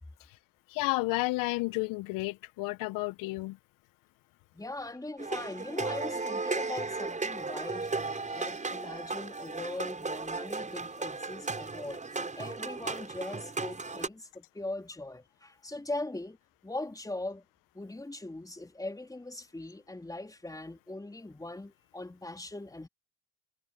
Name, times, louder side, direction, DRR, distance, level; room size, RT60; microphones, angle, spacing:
voice 1, 0.7-3.6, left 23 dB, 65° left, 1.4 m, -31 dB
voice 2, 4.5-16.4 16.6-17.4 17.7-22.9, left 2 dB, 10° left, 3.8 m, -40 dB
sound 1, 5.2-14.1, right 3 dB, 20° right, 7.3 m, -35 dB
hypercardioid pair, 65°, 35 cm